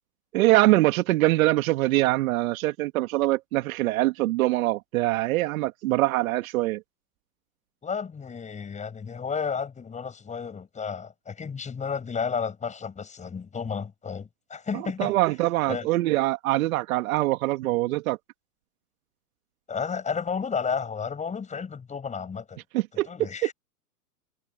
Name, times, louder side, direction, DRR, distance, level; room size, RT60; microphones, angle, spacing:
voice 1, 0.3-6.8 14.7-18.2 22.7-23.5, right 18 dB, 55° right, 2.3 m, -23 dB
voice 2, 7.8-15.1 15.7-15.9 19.7-22.6 22.9-23.5, left 6 dB, 15° left, 6.3 m, -32 dB
hypercardioid pair, 130°, 50 cm